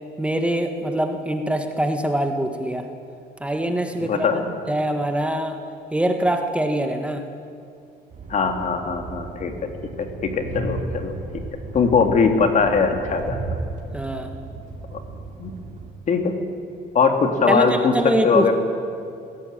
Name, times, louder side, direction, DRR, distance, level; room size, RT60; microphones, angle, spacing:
voice 1, 0.2-2.9 3.4-4.3 4.7-5.6 5.9-7.2 13.9-14.3 17.5-18.5, right 1 dB, 5° right, 5 dB, 1.6 m, -23 dB
voice 2, 4.0-4.5 8.3-9.5 10.0-11.2 11.7-13.4 14.9-15.0 15.4-15.5 16.1-16.4 16.9-18.0 18.2-18.5, left 5 dB, 45° left, 5 dB, 2.7 m, -20 dB
Train, 8.1-15.9, right 3 dB, 45° right, 3.4 m, -34 dB
20.5 x 17.0 x 9.0 m, 2.5 s
cardioid pair, 110°, 17 cm